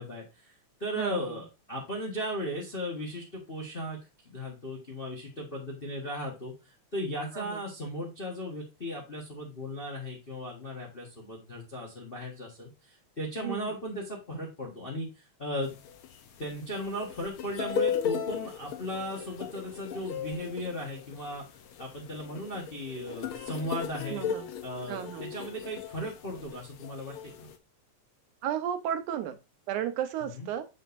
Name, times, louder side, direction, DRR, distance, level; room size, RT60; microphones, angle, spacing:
voice 1, 0.0-4.0 4.2-6.5 6.9-15.7 16.4-21.4 21.8-24.2 24.6-27.5 30.2-30.5, equal, 40° left, -2 dB, 0.8 m, -36 dB
voice 2, 1.0-1.4 7.3-7.6 13.4-13.7 24.1-24.5 24.9-25.3 28.4-29.4 29.7-30.6, right 10 dB, 85° right, 8 dB, 2.3 m, -33 dB
sound 1, 15.6-27.6, left 8 dB, 75° left, 1.2 m, -37 dB
6.8 x 6.4 x 2.6 m, 0.27 s
omnidirectional pair, 3.4 m